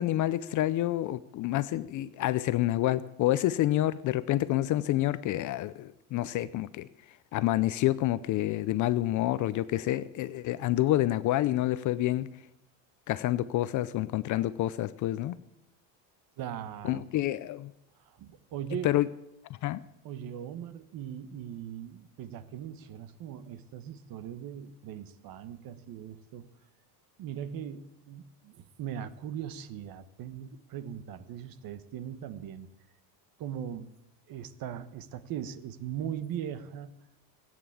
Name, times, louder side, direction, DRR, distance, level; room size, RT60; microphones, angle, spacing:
voice 1, 0.0-6.9 7.3-12.3 13.1-15.4 16.8-17.7 18.8-19.1 19.6-19.8, left 14 dB, 40° left, 0.5 m, -28 dB
voice 2, 16.4-17.0 18.1-18.9 20.0-26.5 27.2-32.7 33.4-33.9 34.3-36.9, right 9 dB, 45° right, 1.2 m, -39 dB
17.5 x 9.3 x 8.6 m
cardioid pair, 145°, 49 cm